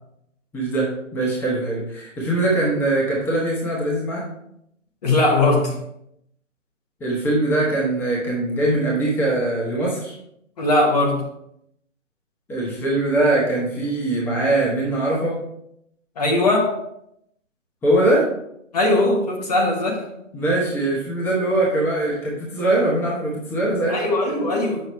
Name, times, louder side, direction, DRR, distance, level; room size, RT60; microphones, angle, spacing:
voice 1, 0.5-4.2 7.0-10.1 12.5-15.4 17.8-18.3 20.3-24.0, right 2 dB, 5° left, -5 dB, 1.2 m, -22 dB
voice 2, 5.0-5.8 10.6-11.2 16.2-16.8 18.7-20.0 23.9-24.8, left 2 dB, 30° left, 0 dB, 1.2 m, -19 dB
7.7 x 6.4 x 3.1 m, 0.76 s
figure-of-eight pair, 135°, 38 cm